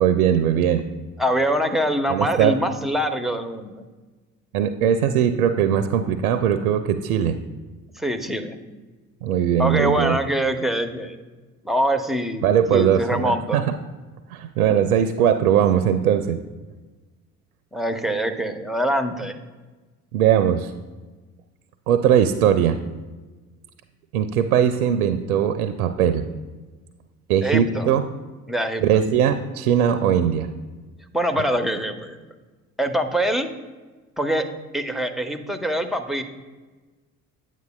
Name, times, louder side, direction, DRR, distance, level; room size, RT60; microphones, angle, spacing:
voice 1, 0.0-0.9 2.1-2.5 4.5-7.4 9.2-10.2 12.4-13.6 14.3-16.4 20.1-20.7 21.9-22.8 24.1-26.2 27.3-28.0 28.8-30.5, right 9 dB, 75° right, 10 dB, 0.5 m, -20 dB
voice 2, 1.2-3.8 8.0-8.6 9.6-11.2 11.6-13.6 17.7-19.4 27.4-27.9 28.5-29.0 31.1-32.2 32.8-33.5 34.2-34.5 34.7-36.2, right 1 dB, ahead, 7 dB, 0.6 m, -24 dB
9.1 x 8.1 x 2.2 m, 1.3 s
figure-of-eight pair, 50°, 45 cm